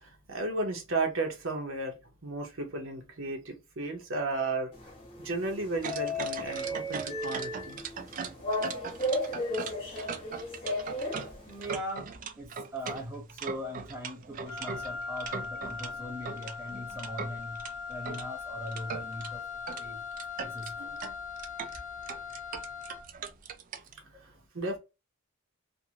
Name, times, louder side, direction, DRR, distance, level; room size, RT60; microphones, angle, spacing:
voice 1, 0.0-2.0 2.2-4.7 5.2-7.8 24.2-24.8, right 2 dB, 60° right, 0.8 m, -34 dB
sound 1, 4.7-11.7, left 1 dB, 25° left, 0.9 m, -35 dB
sound 2, 5.8-15.9 16.3-18.3 18.7-19.3 19.7-19.8 20.1-23.9, right 6 dB, 40° right, 0.3 m, -40 dB
voice 2, 11.5-20.0 20.4-20.8, equal, 10° right, 0.8 m, -41 dB
Wind instrument woodwind instrument, 14.5-23.2, left 5 dB, 60° left, 0.6 m, -40 dB
2.6 x 2.6 x 2.8 m
head